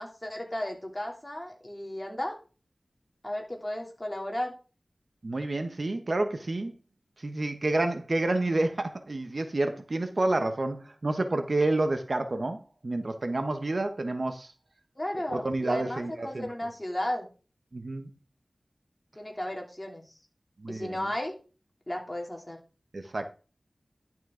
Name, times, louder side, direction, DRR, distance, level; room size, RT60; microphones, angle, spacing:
voice 1, 0.0-2.3 3.2-4.5 15.0-17.3 19.2-20.0 20.7-21.3 21.9-22.6, left 1 dB, 20° left, 1 dB, 2.9 m, -34 dB
voice 2, 5.2-6.7 7.2-14.5 15.3-16.5 17.7-18.1 20.6-21.1 22.9-23.3, right 2 dB, 55° right, 8 dB, 1.0 m, -29 dB
11.0 x 6.1 x 3.8 m, 0.35 s
wide cardioid pair, 55°, 0 cm